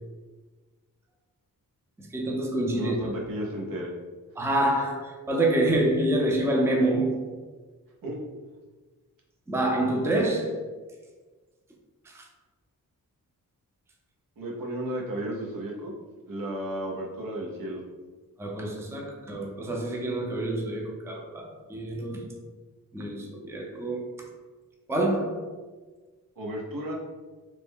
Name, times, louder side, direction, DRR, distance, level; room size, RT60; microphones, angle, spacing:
voice 1, 2.1-3.0 4.4-7.3 9.5-10.6 12.1-12.2 18.4-22.3 22.9-24.1 24.9-25.4, right 1 dB, 10° right, 0.4 m, -27 dB
voice 2, 2.7-3.9 8.0-8.2 14.4-15.9 16.3-17.8 26.4-26.9, right 1 dB, 70° right, 0.8 m, -33 dB
3.2 x 2.1 x 3.5 m
wide cardioid pair, 90°, 35 cm